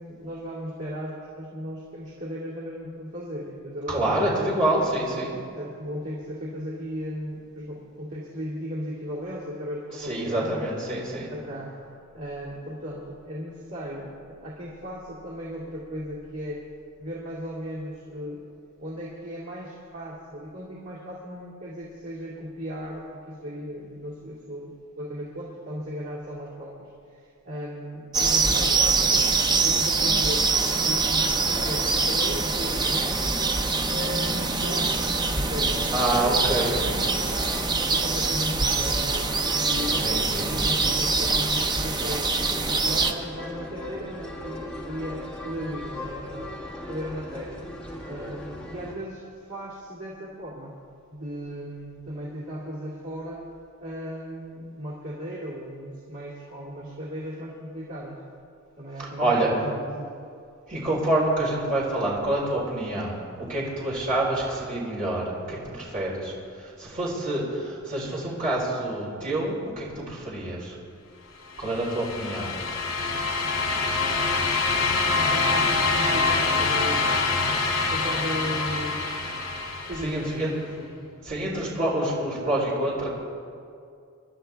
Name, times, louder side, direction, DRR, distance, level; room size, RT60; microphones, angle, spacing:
voice 1, 0.0-4.6 5.6-10.7 11.3-11.8 12.1-16.6 17.0-18.4 18.8-30.5 30.8-33.5 33.9-35.0 35.3-46.6 46.9-47.6 48.0-50.8 51.1-53.5 53.8-58.2 58.8-60.1 75.1-77.1 77.8-79.0 79.8-81.1, equal, 80° right, -8 dB, 2.5 m, -36 dB
voice 2, 3.9-5.4 10.0-11.3 35.9-37.0 39.9-40.5 59.0-59.5 60.7-70.8 71.6-72.5 80.0-80.5 81.2-83.1, right 1 dB, 40° right, -6 dB, 4.0 m, -27 dB
sound 1, 28.1-43.1, right 4 dB, 20° right, 0.6 m, -24 dB
sound 2, 30.3-48.9, left 1 dB, 5° left, 1.4 m, -39 dB
sound 3, 71.5-80.4, left 3 dB, 75° left, 2.5 m, -25 dB
25.5 x 11.5 x 3.5 m, 2.4 s
head